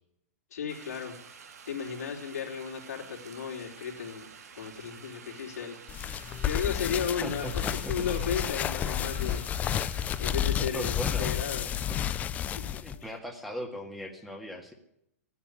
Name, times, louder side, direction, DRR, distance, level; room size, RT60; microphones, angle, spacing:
voice 1, 0.5-1.4 1.7-4.3 4.6-9.4 10.2-10.9 11.2-11.7 12.7-13.1, left 7 dB, 80° left, 1 dB, 3.8 m, -35 dB
sound 1, 0.7-10.3, right 6 dB, 85° right, 2.2 m, -50 dB
sound 2, 5.9-13.0, left 10 dB, 20° left, 0.5 m, -31 dB
voice 2, 7.2-8.1 10.6-11.3 11.9-12.0 12.8-14.7, equal, ahead, 2 dB, 1.9 m, -38 dB
13.5 x 10.0 x 9.5 m, 0.76 s
hypercardioid pair, 145°, 8 cm